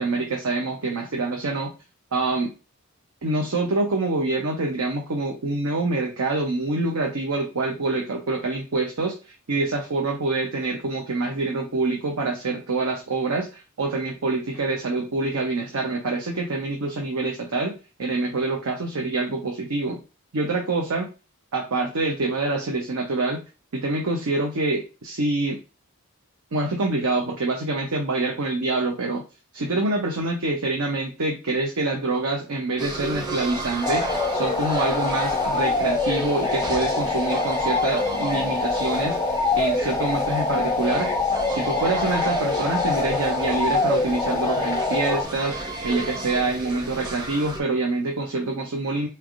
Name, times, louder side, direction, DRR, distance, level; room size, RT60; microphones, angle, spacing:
voice 1, 0.0-1.7 2.1-2.5 3.2-9.1 9.5-20.0 20.3-21.1 21.5-23.4 23.7-25.6 26.5-29.2 29.5-41.1 41.5-45.6 45.8-49.1, right 2 dB, 75° right, 1 dB, 0.7 m, -26 dB
sound 1, 32.8-47.6, right 1 dB, 20° right, 0.7 m, -34 dB
sound 2, 33.8-45.2, left 3 dB, 15° left, 0.3 m, -24 dB
4.3 x 3.3 x 2.5 m, 0.31 s
head